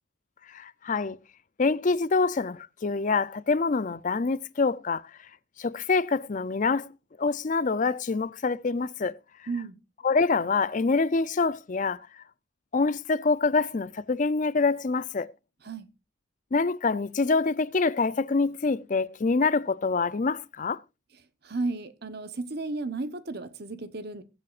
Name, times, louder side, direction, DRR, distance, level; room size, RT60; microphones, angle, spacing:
voice 1, 0.5-1.2 1.6-5.0 5.6-6.9 7.2-9.2 10.0-12.0 12.7-15.3 16.5-20.8, left 4 dB, 40° left, 0.4 m, -26 dB
voice 2, 9.5-9.8 15.6-15.9 21.4-24.2, right 3 dB, 50° right, 1.0 m, -33 dB
22.0 x 7.6 x 2.5 m
head